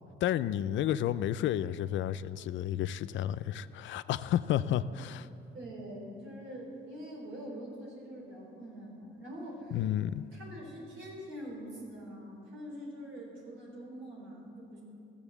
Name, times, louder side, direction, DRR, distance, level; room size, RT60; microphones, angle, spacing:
voice 1, 0.2-5.3 9.7-10.2, left 11 dB, 70° left, 14 dB, 0.4 m, -31 dB
voice 2, 5.5-9.8 10.3-14.8, equal, 80° right, -2 dB, 3.6 m, -44 dB
14.5 x 7.1 x 7.1 m, 2.7 s
cardioid pair, 90°, 20 cm